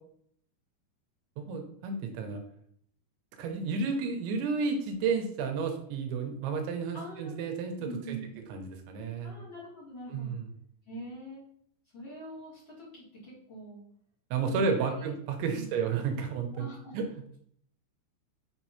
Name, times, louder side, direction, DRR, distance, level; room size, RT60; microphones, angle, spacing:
voice 1, 1.4-2.4 3.4-8.2 8.5-9.3 10.1-10.5 14.3-16.7 16.9-17.0, right 5 dB, 90° right, 4 dB, 3.2 m, -32 dB
voice 2, 6.9-7.4 7.8-8.4 9.2-10.3 10.9-11.4 11.9-13.8 14.5-15.1 15.5-15.7 16.5-17.0, right 1 dB, 30° left, -8 dB, 2.7 m, -43 dB
7.0 x 5.9 x 2.9 m, 0.66 s
omnidirectional pair, 5.3 m